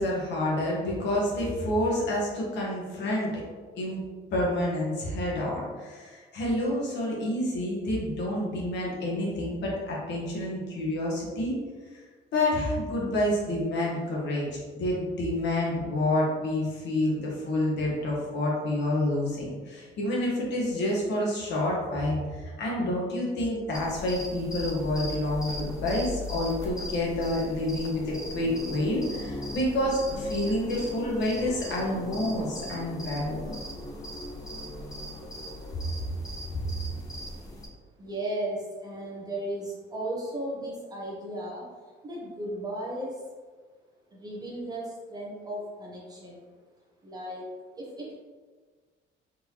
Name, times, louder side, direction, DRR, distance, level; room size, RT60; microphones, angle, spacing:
voice 1, 0.0-3.4 3.8-4.0 4.3-11.6 11.9-12.0 12.3-33.5 36.5-36.7, left 1 dB, 60° left, -4 dB, 1.2 m, -28 dB
sound 1, 23.7-37.7, left 1 dB, 15° left, 0.6 m, -38 dB
voice 2, 38.0-41.7 42.0-43.2 44.1-46.5 47.0-47.4 47.8-48.1, right 1 dB, 20° right, -4 dB, 0.8 m, -35 dB
4.0 x 3.3 x 2.8 m, 1.5 s
cardioid pair, 160°, 20 cm